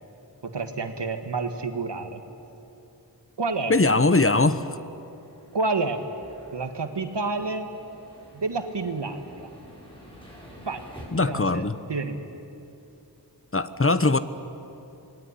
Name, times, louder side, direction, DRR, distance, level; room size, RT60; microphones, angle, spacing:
voice 1, 0.4-2.2 3.4-3.7 5.5-6.1 6.5-7.7 8.3-9.5 10.7-10.8 11.2-12.4, right 3 dB, 85° right, 7 dB, 1.8 m, -29 dB
voice 2, 3.7-4.8 11.1-11.8 13.5-14.2, left 3 dB, 30° left, 12 dB, 1.1 m, -21 dB
sound 1, 4.9-11.1, equal, 10° left, 7.4 m, -49 dB
27.0 x 20.5 x 9.9 m, 2.9 s
wide cardioid pair, 55°, 41 cm